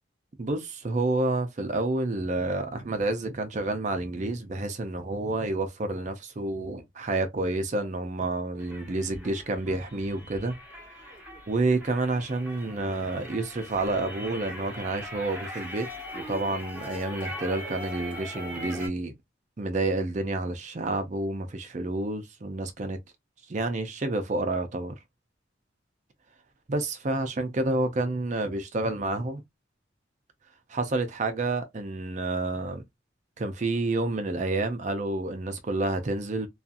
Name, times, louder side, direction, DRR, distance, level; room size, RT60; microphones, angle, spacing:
voice 1, 0.4-10.5 11.5-15.9 16.1-19.1 19.6-23.0 23.5-24.9 26.7-29.4 30.7-32.8 33.4-36.5, right 2 dB, 40° right, 0.4 m, -29 dB
sound 1, 8.6-18.9, equal, 10° right, 1.1 m, -41 dB
2.7 x 2.3 x 2.5 m
head